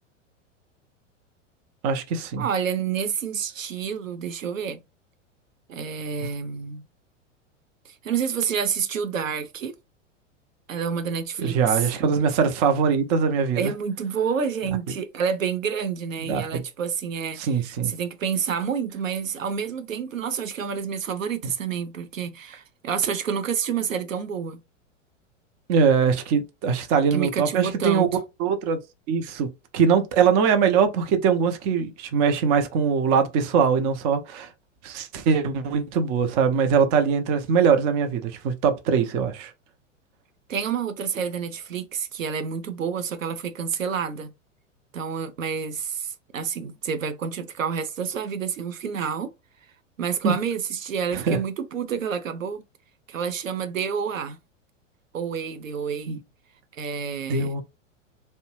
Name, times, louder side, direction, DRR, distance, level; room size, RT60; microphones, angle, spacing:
voice 1, 1.8-2.5 11.4-13.7 16.2-16.6 17.4-17.9 25.7-28.1 28.4-28.8 29.1-29.5 29.7-34.5 34.8-39.5 50.2-50.3 51.1-51.4 56.1-56.2 57.3-57.6, right 6 dB, 35° right, 0.6 m, -22 dB
voice 2, 2.4-4.8 5.7-6.8 7.9-9.7 10.7-11.9 13.5-24.6 27.1-28.1 40.5-44.3 44.9-49.3 50.0-52.6 53.1-54.4 55.1-56.1 56.7-57.5, right 7 dB, 90° right, 0.6 m, -29 dB
2.6 x 2.1 x 2.9 m
hypercardioid pair, 100°, 38 cm